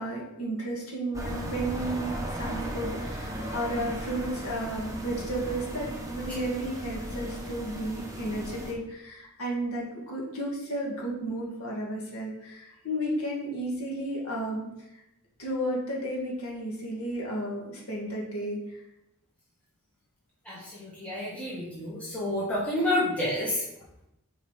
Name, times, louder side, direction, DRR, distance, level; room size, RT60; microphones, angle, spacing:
voice 1, 0.0-14.7 15.4-18.6, right 1 dB, 90° left, -3 dB, 2.0 m, -33 dB
sound 1, 1.1-8.7, equal, 15° right, 1.1 m, -36 dB
voice 2, 20.4-23.6, left 1 dB, 5° left, -9 dB, 1.6 m, -29 dB
6.4 x 4.7 x 4.9 m, 0.85 s
head